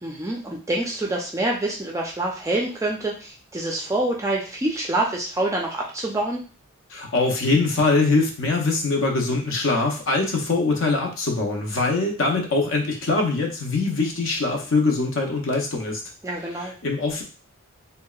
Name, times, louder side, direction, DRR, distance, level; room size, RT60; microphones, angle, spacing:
voice 1, 0.0-6.4 16.2-16.7, right 2 dB, 15° right, -1 dB, 0.3 m, -26 dB
voice 2, 6.9-16.0 16.6-17.2, left 3 dB, 60° left, 1 dB, 0.5 m, -23 dB
2.7 x 2.0 x 2.3 m, 0.36 s
head